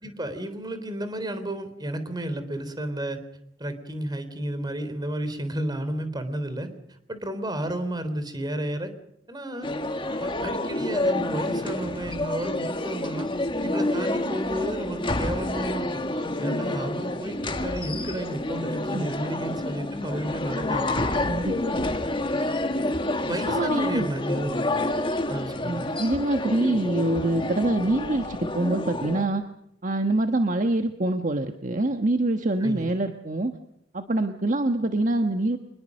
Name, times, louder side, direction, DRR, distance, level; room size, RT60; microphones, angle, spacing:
voice 1, 0.0-3.2 3.6-8.9 9.3-9.7 10.2-13.3 13.6-21.3 23.2-24.6 25.3-25.9 32.6-32.9, right 1 dB, 25° right, 11 dB, 3.6 m, -32 dB
sound 1, 9.6-29.3, left 1 dB, 30° left, 1.9 m, -28 dB
voice 2, 21.2-21.9 23.5-24.1 25.6-29.4 29.8-33.5 33.9-35.6, right 2 dB, 45° right, 6 dB, 1.4 m, -25 dB
26.5 x 21.0 x 6.5 m, 0.76 s
head